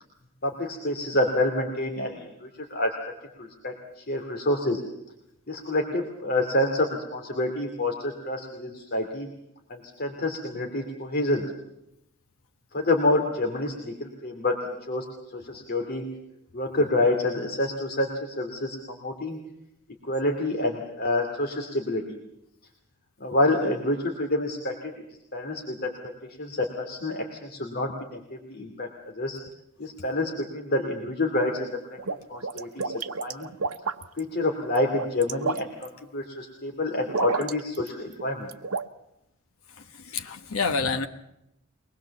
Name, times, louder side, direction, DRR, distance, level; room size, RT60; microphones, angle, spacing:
voice 1, 0.4-2.9 3.4-4.8 5.5-9.3 9.7-11.4 12.7-15.1 15.3-16.0 16.5-19.4 20.0-22.2 23.2-25.0 25.3-25.9 26.4-29.4 29.8-32.0 32.3-33.5 34.1-38.5, left 1 dB, 50° left, 3 dB, 2.6 m, -28 dB
sound 1, 31.8-34.2 34.8-35.9 37.1-37.9 38.1-38.9, right 4 dB, 80° right, 0.9 m, -30 dB
voice 2, 40.0-41.1, left 4 dB, 75° left, 6 dB, 1.2 m, -27 dB
23.5 x 20.0 x 7.2 m, 0.84 s
head